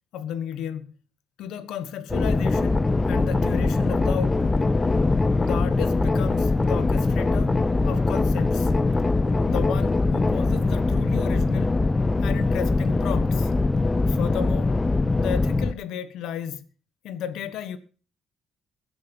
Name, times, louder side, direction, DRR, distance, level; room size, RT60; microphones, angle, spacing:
voice 1, 0.1-0.9 1.4-4.6 5.4-7.6 7.8-8.7 9.5-11.8 12.2-13.5 14.1-14.7 15.2-16.6 17.0-17.8, left 9 dB, 90° left, 1.3 m, -33 dB
sound 1, 2.1-15.7, left 3 dB, 15° left, 0.5 m, -22 dB
21.0 x 7.8 x 5.5 m
cardioid pair, 155°, 0 cm